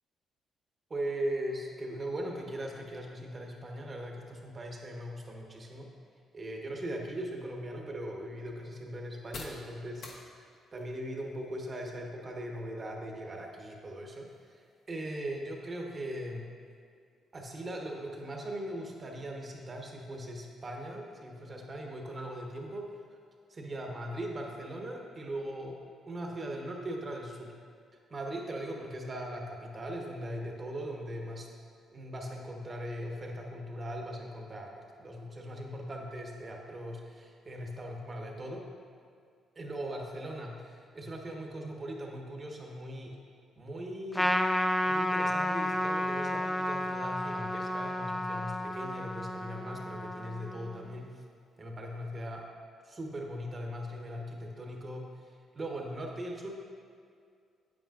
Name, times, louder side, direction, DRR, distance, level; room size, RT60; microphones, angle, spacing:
voice 1, 0.9-5.9 6.3-10.1 10.7-16.5 17.3-23.0 23.5-27.6 28.1-31.5 31.9-38.7 39.6-43.2 43.6-44.4 44.8-51.2 51.6-52.5 52.8-56.6, right 1 dB, 35° right, 0 dB, 1.3 m, -39 dB
sound 1, 7.2-24.8, left 3 dB, 60° left, 1.2 m, -57 dB
Trumpet, 44.1-50.8, left 1 dB, 5° left, 0.4 m, -31 dB
8.9 x 8.6 x 2.5 m, 2.2 s
cardioid pair, 90°, 0 cm